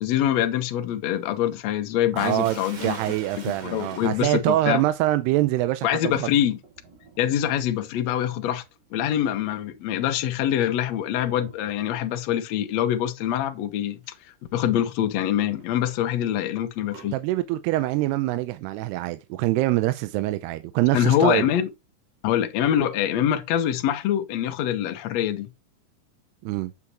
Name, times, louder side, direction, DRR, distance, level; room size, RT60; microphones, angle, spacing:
voice 1, 0.0-3.0 3.6-4.8 5.8-6.6 7.2-8.6 8.9-14.0 14.5-17.1 20.9-21.7 22.2-25.5, left 10 dB, 85° left, 1.5 m, -24 dB
voice 2, 2.1-6.3 17.1-21.5 26.4-26.7, right 16 dB, 85° right, 2.7 m, -24 dB
Sink (filling or washing), 2.2-12.1 13.2-13.5 14.0-14.1 15.6-17.1, right 5 dB, 55° right, 4.2 m, -47 dB
8.5 x 8.4 x 2.9 m
omnidirectional pair, 4.6 m